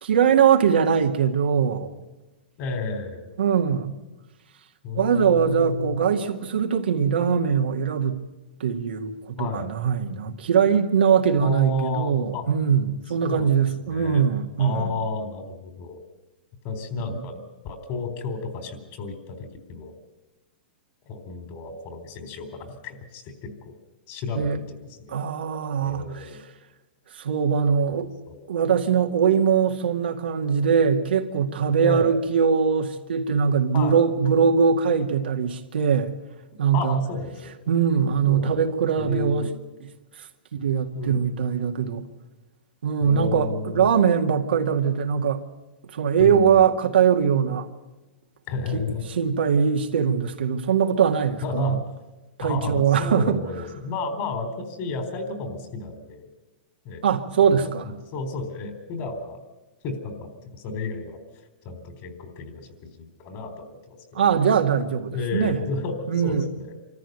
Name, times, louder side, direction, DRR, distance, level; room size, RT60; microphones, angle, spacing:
voice 1, 0.0-1.9 3.4-3.9 5.0-8.2 8.6-15.0 17.1-17.2 24.3-24.6 25.1-26.3 27.1-28.1 28.5-36.1 36.6-37.0 37.7-39.5 40.5-42.1 42.8-45.4 45.9-47.7 48.7-48.9 49.2-51.8 52.4-53.4 57.0-57.9 64.1-65.6 66.1-66.4, right 7 dB, 90° right, 2.1 m, -21 dB
voice 2, 2.6-3.3 4.8-6.0 9.4-9.7 11.4-12.4 13.2-13.5 13.8-14.3 14.6-16.0 16.6-19.9 21.1-23.7 24.1-25.2 25.8-26.4 27.9-28.5 31.8-32.1 33.7-34.0 36.7-37.5 38.3-38.7 39.0-39.5 40.9-41.3 43.0-43.9 46.2-46.6 48.5-49.0 51.4-51.8 52.4-56.3 56.8-57.0 57.6-59.4 59.8-61.2 61.6-64.4 65.1-66.8, left 3 dB, 40° left, 3.9 m, -32 dB
25.0 x 14.0 x 9.3 m
hypercardioid pair, 140°, 5 cm